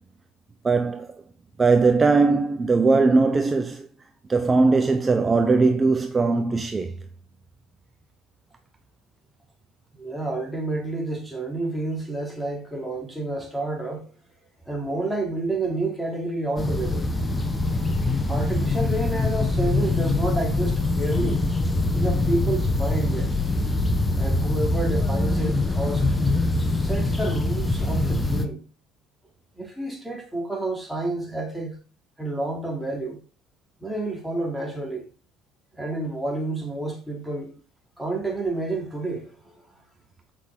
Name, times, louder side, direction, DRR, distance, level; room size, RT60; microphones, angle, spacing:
voice 1, 0.6-1.1 1.6-3.9 4.3-6.9, right 3 dB, 25° right, 0.8 m, -20 dB
voice 2, 10.0-14.1 14.7-17.1 18.3-21.5 21.9-23.3 24.1-26.2 26.8-28.6 29.6-31.8 32.2-33.2 33.8-35.1 35.7-37.5 38.0-39.3, right 2 dB, ahead, 3.5 m, -29 dB
sound 1, 16.6-28.5, left 2 dB, 15° left, 1.3 m, -24 dB
8.1 x 6.0 x 3.9 m
supercardioid pair, 80°, 0 cm